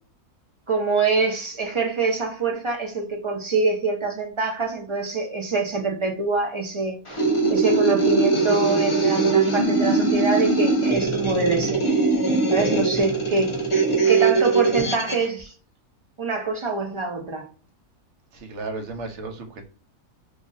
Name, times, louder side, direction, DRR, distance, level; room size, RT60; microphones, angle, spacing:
voice 1, 0.7-7.0 7.5-11.8 12.5-13.5 14.0-15.5 16.2-17.4, right 3 dB, 35° right, 0.4 m, -25 dB
sound 1, 7.1-15.3, right 3 dB, 30° left, 0.6 m, -21 dB
voice 2, 18.3-19.7, right 3 dB, 55° right, 1.0 m, -35 dB
3.0 x 2.4 x 3.9 m
omnidirectional pair, 1.6 m